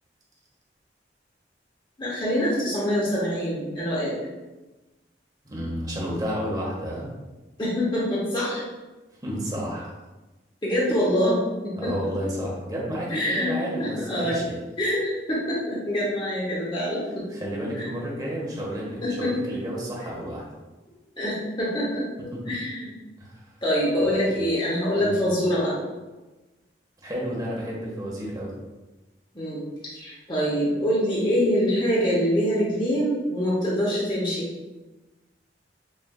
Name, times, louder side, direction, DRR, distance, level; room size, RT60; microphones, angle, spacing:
voice 1, 2.0-4.1 7.6-8.6 10.6-11.9 13.1-14.4 14.8-17.2 17.7-17.9 19.0-19.3 21.2-22.0 22.5-22.9 23.6-25.8 29.3-34.5, equal, 25° left, -7 dB, 0.8 m, -25 dB
voice 2, 5.4-7.1 9.2-9.9 11.8-14.6 17.3-20.4 22.3-22.6 23.2-23.4 24.1-24.2 25.0-25.2 27.0-28.5, equal, 20° right, -4 dB, 0.9 m, -31 dB
6.2 x 2.5 x 2.3 m, 1.1 s
head